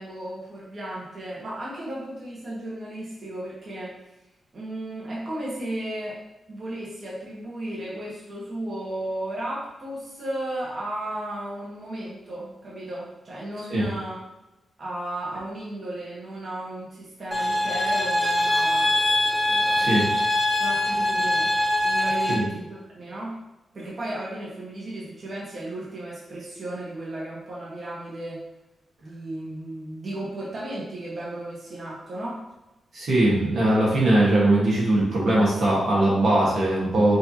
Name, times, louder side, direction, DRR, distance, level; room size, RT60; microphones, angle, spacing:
voice 1, 0.0-3.9 4.5-6.2 6.5-14.2 14.8-18.9 19.5-20.2 20.6-21.5 21.8-23.4 23.7-28.4 29.0-32.4, right 1 dB, 40° right, -7 dB, 1.4 m, -34 dB
sound 1, 17.3-22.3, left 1 dB, 10° right, 1.5 m, -23 dB
voice 2, 19.8-20.1 22.3-22.4 32.9-37.2, right 1 dB, 65° right, -5 dB, 1.5 m, -20 dB
6.3 x 2.8 x 3.0 m, 0.97 s
wide cardioid pair, 140°, 0 cm